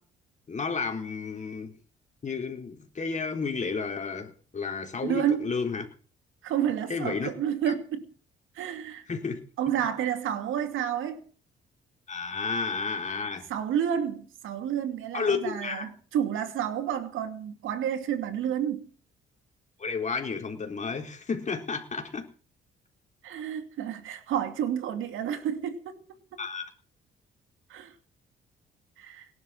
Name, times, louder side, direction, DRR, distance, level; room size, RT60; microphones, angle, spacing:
voice 1, 0.5-1.8 2.2-5.9 6.9-7.3 9.1-9.4 12.1-13.5 15.1-15.9 19.8-22.3 26.4-26.7, left 5 dB, 35° left, 4.2 m, -32 dB
voice 2, 5.0-5.5 6.4-8.1 8.5-9.0 9.6-11.2 13.5-18.9 23.2-26.0 27.7-27.9 29.0-29.3, right 9 dB, 85° right, 2.5 m, -30 dB
18.5 x 11.5 x 6.3 m
cardioid pair, 90°, 20 cm